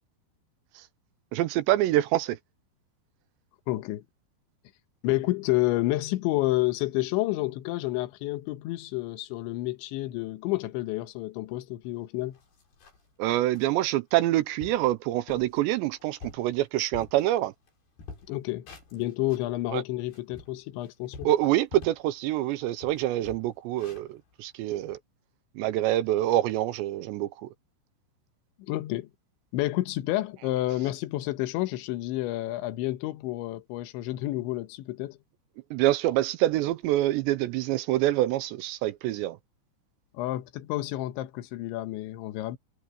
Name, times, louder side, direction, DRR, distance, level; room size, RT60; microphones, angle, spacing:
voice 1, 1.3-2.4 13.2-17.5 19.7-19.8 21.3-25.0 25.6-27.5 35.7-39.4, right 14 dB, 80° right, 2.8 m, -26 dB
voice 2, 3.7-4.0 5.0-12.4 18.3-21.3 28.7-29.1 29.5-35.2 40.1-42.6, left 17 dB, 80° left, 3.5 m, -30 dB
sound 1, 11.9-12.0 12.3-13.1 13.5-13.8 14.2-14.3 14.6-14.9 15.3-15.6 16.0-17.7 18.0-19.5 20.0-22.1 22.5-22.6 22.8-25.0, left 3 dB, 55° left, 7.6 m, -47 dB
omnidirectional pair, 5.3 m